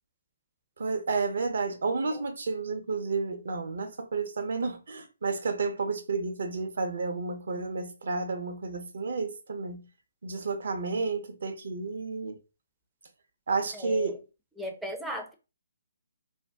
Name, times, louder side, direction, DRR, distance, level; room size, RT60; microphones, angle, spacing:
voice 1, 0.8-9.8 10.2-12.4 13.5-14.2, right 4 dB, 60° right, 0.6 m, -31 dB
voice 2, 13.7-14.2 14.6-15.3, left 1 dB, 5° right, 0.5 m, -36 dB
2.6 x 2.1 x 3.3 m
figure-of-eight pair, 135°, 0 cm